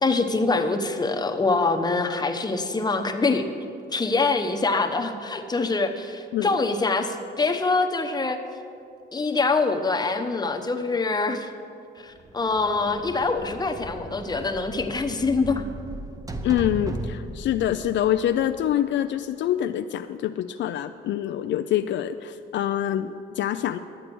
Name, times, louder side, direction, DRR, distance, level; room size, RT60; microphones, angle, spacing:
voice 1, 0.0-3.4 3.9-8.4 9.1-11.5 12.0-15.7, left 3 dB, 20° left, 5 dB, 0.9 m, -24 dB
sound 1, 12.2-18.9, right 1 dB, 15° right, 0.8 m, -37 dB
voice 2, 16.4-23.8, left 11 dB, 65° left, 9 dB, 0.4 m, -25 dB
11.5 x 7.7 x 6.1 m, 2.5 s
cardioid pair, 90°, 20 cm